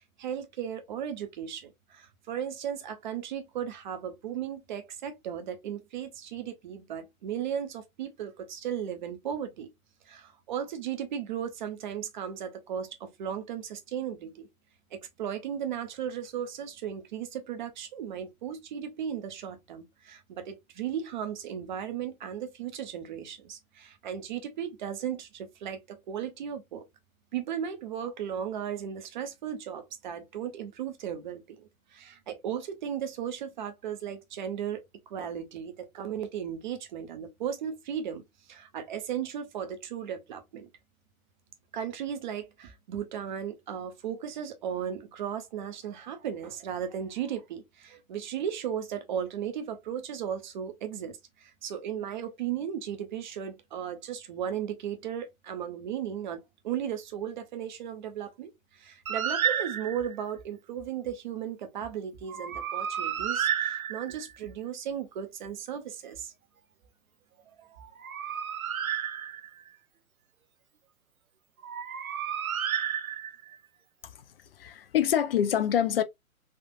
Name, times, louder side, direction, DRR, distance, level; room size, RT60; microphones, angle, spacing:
voice 1, 0.2-9.7 10.0-14.5 14.9-26.8 27.3-38.2 38.5-40.7 41.7-66.3 67.6-67.8, right 9 dB, 35° right, 0.7 m, -36 dB
Bird, 59.1-60.2 62.3-64.4 67.8-69.7 71.6-73.5, right 8 dB, 80° right, 0.6 m, -31 dB
voice 2, 74.6-76.0, left 9 dB, 45° left, 0.5 m, -26 dB
3.6 x 2.4 x 2.4 m
figure-of-eight pair, 125°, 42 cm